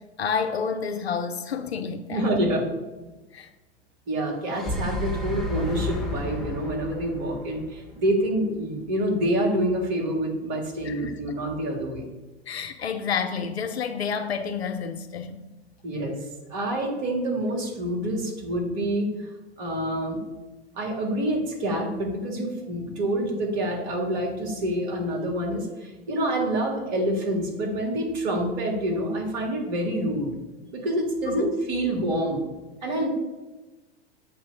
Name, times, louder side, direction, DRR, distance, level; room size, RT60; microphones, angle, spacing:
voice 1, 0.0-2.3 3.3-3.5 10.8-11.2 12.5-15.4 31.3-31.5 32.8-33.0, left 6 dB, 80° left, 7 dB, 0.6 m, -30 dB
voice 2, 2.1-2.7 4.1-12.1 15.8-16.2 16.5-19.1 19.6-20.2 20.8-30.3 30.7-32.4 32.8-33.1, right 1 dB, 45° right, -1 dB, 2.0 m, -27 dB
sound 1, 4.3-8.5, left 1 dB, ahead, 1.4 m, -32 dB
7.6 x 3.1 x 5.9 m, 1.1 s
figure-of-eight pair, 90°, 32 cm